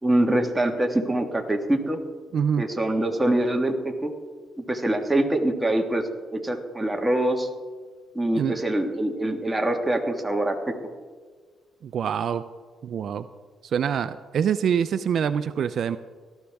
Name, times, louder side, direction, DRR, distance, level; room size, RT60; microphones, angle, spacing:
voice 1, 0.0-2.0 2.6-4.1 4.6-7.5 8.1-10.7, right 1 dB, 10° right, 3 dB, 1.6 m, -24 dB
voice 2, 2.3-2.6 8.4-8.6 11.8-12.4 12.8-13.3 13.6-16.0, right 8 dB, 60° right, 12 dB, 0.4 m, -25 dB
18.0 x 13.0 x 3.5 m, 1.5 s
cardioid pair, 90°, 0 cm